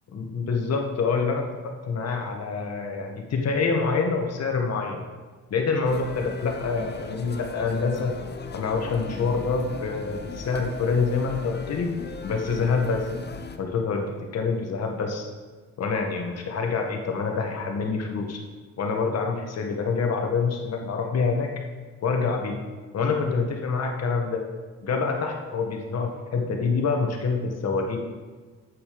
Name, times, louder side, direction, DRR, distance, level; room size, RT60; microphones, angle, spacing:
voice 1, 0.1-5.0 5.5-8.1 8.5-11.9 12.2-13.0 13.6-14.1 14.3-15.3 15.8-18.4 18.8-21.5 22.0-22.6 22.9-24.4 24.8-28.0, left 4 dB, 55° left, 2 dB, 1.6 m, -26 dB
sound 1, 5.8-13.6, left 4 dB, 35° left, 0.8 m, -38 dB
8.0 x 7.0 x 5.1 m, 1.4 s
cardioid pair, 90°, 30 cm